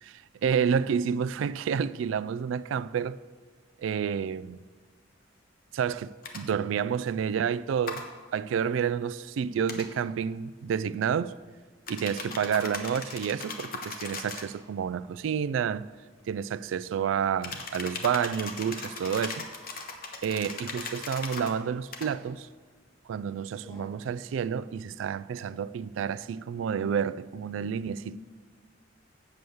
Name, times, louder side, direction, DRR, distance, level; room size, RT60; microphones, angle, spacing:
voice 1, 0.0-3.2 3.8-4.6 5.7-8.0 8.3-11.3 11.9-15.9 16.3-19.5 20.2-22.5 23.1-28.2, right 7 dB, 80° right, 0.3 m, -29 dB
sound 1, 6.2-6.4 7.9-8.1 9.7-9.9 11.9-14.5 17.4-21.5 21.9-22.1, left 4 dB, 50° left, 1.1 m, -38 dB
voice 2, 12.2-12.7 23.5-23.9 28.0-28.2, left 2 dB, 20° left, 1.1 m, -47 dB
7.8 x 7.0 x 7.8 m
head